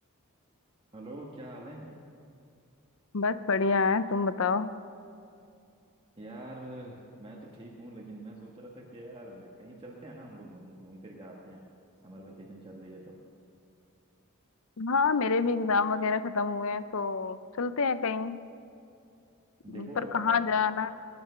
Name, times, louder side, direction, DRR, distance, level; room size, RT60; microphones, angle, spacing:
voice 1, 0.9-1.9 6.2-11.6 12.0-13.2 19.6-20.4, right 1 dB, 25° right, -2 dB, 1.4 m, -45 dB
voice 2, 3.1-4.7 14.8-18.4 19.7-20.9, left 4 dB, 65° left, 13 dB, 0.6 m, -27 dB
21.0 x 10.5 x 5.7 m, 2.5 s
head